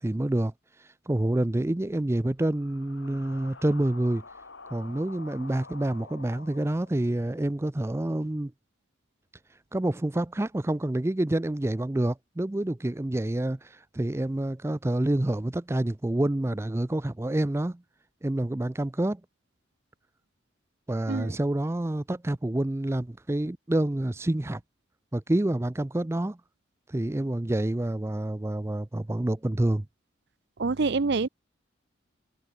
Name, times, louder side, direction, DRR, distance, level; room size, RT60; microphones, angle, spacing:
voice 1, 0.0-4.2 4.7-8.5 9.7-17.8 18.2-19.2 20.9-24.6 25.1-26.4 26.9-29.9, right 1 dB, 15° right, 0.4 m, -28 dB
sound 1, 1.4-7.6, left 3 dB, 70° left, 3.4 m, -49 dB
voice 2, 30.6-31.3, right 4 dB, 60° right, 0.6 m, -26 dB
head